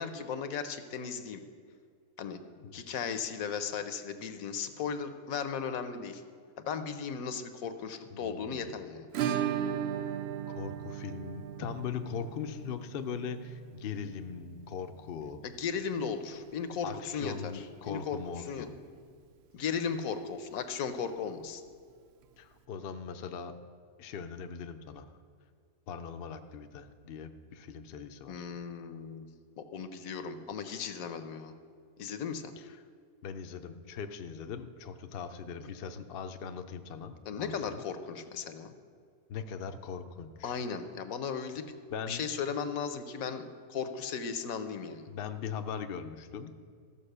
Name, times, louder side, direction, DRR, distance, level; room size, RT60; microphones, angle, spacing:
voice 1, 0.0-1.4 2.2-2.4 2.7-6.2 6.6-9.1 15.4-18.2 18.5-18.7 19.5-21.6 28.3-29.2 29.6-31.5 32.0-32.5 37.3-38.7 40.4-41.7 42.1-43.4 43.7-45.1, left 6 dB, 70° left, 9 dB, 1.1 m, -36 dB
voice 2, 8.1-8.7 10.5-15.4 16.8-18.8 22.4-23.5 24.0-25.1 25.9-28.4 32.6-32.8 33.2-37.8 39.3-40.6 41.9-42.2 45.1-46.5, left 6 dB, 55° left, 7 dB, 0.7 m, -40 dB
Acoustic guitar / Strum, 9.1-17.7 18.0-18.1 18.4-18.5 18.9-19.0 21.0-21.1 22.2-22.3, right 9 dB, 65° right, 0.7 m, -38 dB
14.0 x 5.3 x 6.6 m, 2.2 s
omnidirectional pair, 1.5 m